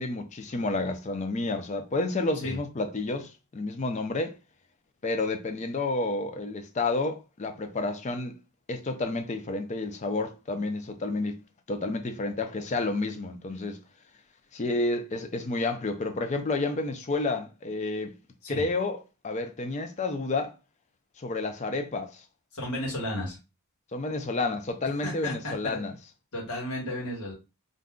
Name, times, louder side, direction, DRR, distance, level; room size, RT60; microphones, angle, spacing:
voice 1, 0.0-4.4 5.0-8.3 8.7-11.4 11.7-13.8 14.5-18.1 18.5-19.0 19.2-20.5 21.2-22.2 23.9-25.9, left 2 dB, 30° left, 0.4 m, -30 dB
voice 2, 22.5-23.4 25.0-25.8 26.3-27.3, left 1 dB, 85° left, 1.3 m, -33 dB
2.5 x 2.2 x 3.6 m
head